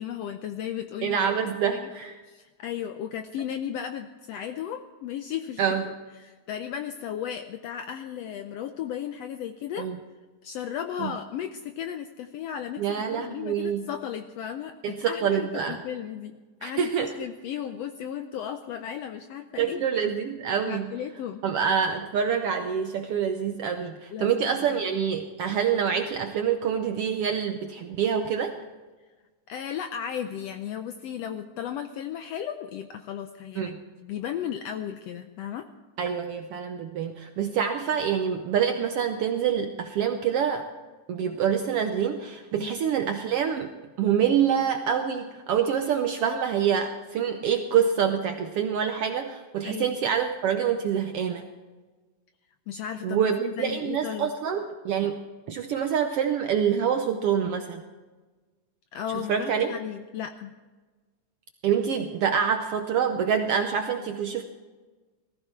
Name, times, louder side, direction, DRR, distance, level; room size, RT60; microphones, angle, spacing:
voice 1, 0.0-1.8 2.3-5.7 6.2-9.9 10.4-19.8 20.7-21.4 24.1-24.8 29.5-33.7 34.0-35.7 42.6-42.7 49.6-50.0 52.7-54.3 58.9-60.5, left 9 dB, 80° left, 8 dB, 1.5 m, -35 dB
voice 2, 1.0-2.1 5.6-5.8 9.8-10.0 11.0-11.1 12.8-13.9 14.8-15.8 16.6-17.2 19.6-20.9 21.4-28.5 33.6-33.8 36.0-40.7 41.1-43.7 44.0-51.4 53.0-55.2 55.5-57.8 59.1-59.8 61.6-64.4, right 8 dB, 75° right, 6 dB, 1.4 m, -26 dB
18.5 x 14.5 x 4.5 m, 1.3 s
omnidirectional pair, 3.5 m